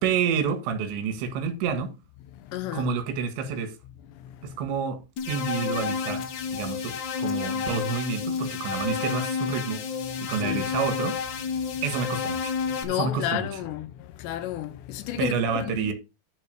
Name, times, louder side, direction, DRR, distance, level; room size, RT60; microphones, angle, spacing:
voice 1, 0.0-1.9 2.7-3.7 4.4-5.0 5.3-9.8 10.2-11.2 11.8-12.5 12.9-13.5 15.2-15.9, right 6 dB, 90° right, 3.9 m, -29 dB
voice 2, 2.5-2.9 6.5-6.6 10.1-10.7 12.7-15.9, left 12 dB, 85° left, 3.1 m, -32 dB
sound 1, 5.2-12.8, left 6 dB, 60° left, 2.1 m, -30 dB
11.0 x 3.9 x 6.7 m
omnidirectional pair, 5.0 m